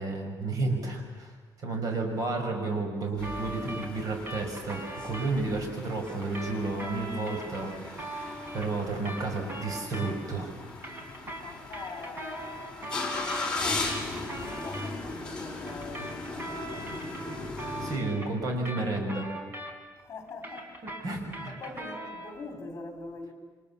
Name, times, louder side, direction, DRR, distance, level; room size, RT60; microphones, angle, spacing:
voice 1, 0.0-1.3 1.6-8.3 8.5-10.5 17.8-19.3 20.8-21.5, right 3 dB, 50° right, 5.8 m, -32 dB
sound 1, 3.2-18.0, left 3 dB, 10° left, 4.7 m, -38 dB
sound 2, 3.2-5.3 6.1-10.4 10.7-14.9 15.7-20.0 20.3-22.4, right 1 dB, 30° right, 4.1 m, -40 dB
voice 2, 11.4-16.9 20.0-20.7 21.1-23.3, left 3 dB, 35° left, 4.1 m, -44 dB
29.0 x 25.5 x 7.1 m
cardioid pair, 160°, 8 cm